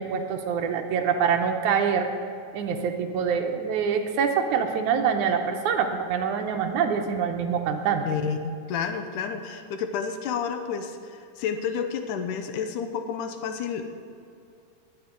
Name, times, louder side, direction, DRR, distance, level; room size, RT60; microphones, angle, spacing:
voice 1, 0.0-2.1 2.5-8.1, right 7 dB, 75° right, 5 dB, 2.1 m, -25 dB
voice 2, 2.7-3.3 8.0-8.4 8.7-13.9, left 7 dB, 75° left, 7 dB, 2.3 m, -31 dB
18.5 x 9.9 x 3.8 m, 2.4 s
omnidirectional pair, 3.8 m